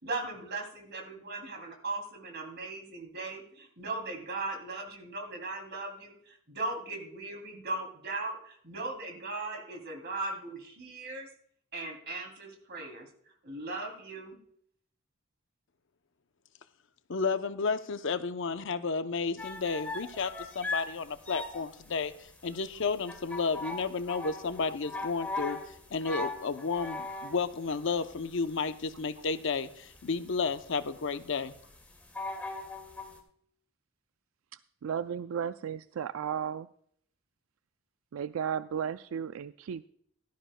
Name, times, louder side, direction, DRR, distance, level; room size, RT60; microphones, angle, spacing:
voice 1, 0.0-11.3 11.7-13.1 13.4-14.4, right 2 dB, 55° right, 3 dB, 2.8 m, -38 dB
voice 2, 17.1-31.6, left 4 dB, 65° left, 10 dB, 0.7 m, -32 dB
sound 1, 19.4-33.2, left 3 dB, 10° left, 2.0 m, -39 dB
voice 3, 34.8-36.7 38.1-39.9, right 8 dB, 80° right, 13 dB, 0.3 m, -34 dB
16.0 x 12.5 x 2.2 m, 0.65 s
head